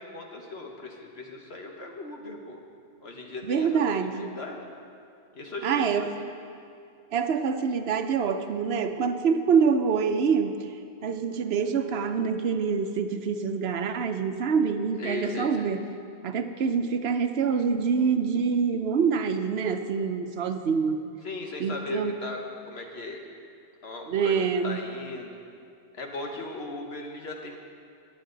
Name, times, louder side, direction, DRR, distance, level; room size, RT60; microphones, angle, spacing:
voice 1, 0.0-2.6 3.0-3.7 4.1-4.6 5.3-6.1 15.0-15.7 21.2-22.4 22.7-23.2 23.8-24.3 24.6-25.4 25.9-27.6, left 2 dB, 75° left, 1 dB, 1.5 m, -37 dB
voice 2, 3.4-4.3 5.6-6.1 7.1-10.6 11.0-15.8 16.2-21.1 21.6-22.1 24.1-24.8, right 6 dB, 75° right, 8 dB, 1.0 m, -26 dB
20.5 x 9.0 x 3.9 m, 2.4 s
omnidirectional pair, 1.1 m